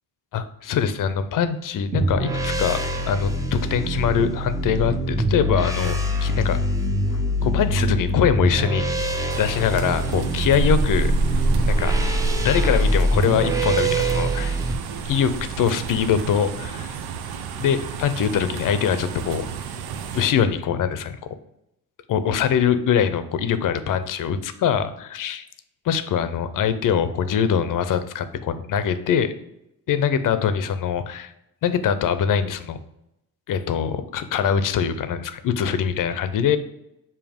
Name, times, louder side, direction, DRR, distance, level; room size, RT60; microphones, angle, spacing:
voice 1, 0.3-2.8 3.1-6.6 7.1-9.1 9.4-11.1 11.7-11.9 12.3-14.6 15.0-17.0 17.6-19.5 20.1-21.2 22.1-25.5 25.8-29.3 29.9-31.3 31.6-32.8 33.5-36.6, left 8 dB, 60° left, 11 dB, 0.6 m, -23 dB
sound 1, 1.9-14.7, right 1 dB, 10° right, 0.5 m, -24 dB
sound 2, 9.3-20.3, right 3 dB, 85° right, 0.7 m, -28 dB
7.1 x 2.8 x 5.1 m, 0.85 s
cardioid pair, 155°, 37 cm